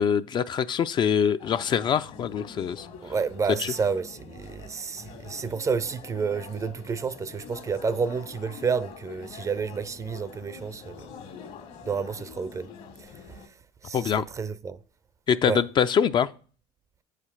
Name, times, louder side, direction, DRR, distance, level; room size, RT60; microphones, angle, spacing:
voice 1, 0.0-2.9 3.6-3.7 13.9-14.2 15.3-16.3, left 7 dB, 35° left, 0.4 m, -24 dB
sound 1, 1.4-13.5, left 6 dB, 65° left, 1.6 m, -45 dB
voice 2, 3.0-11.1 11.9-12.7 13.0-13.4 13.8-14.8 15.4-15.6, right 5 dB, 25° right, 0.5 m, -30 dB
7.7 x 5.0 x 5.7 m
supercardioid pair, 105°, 13 cm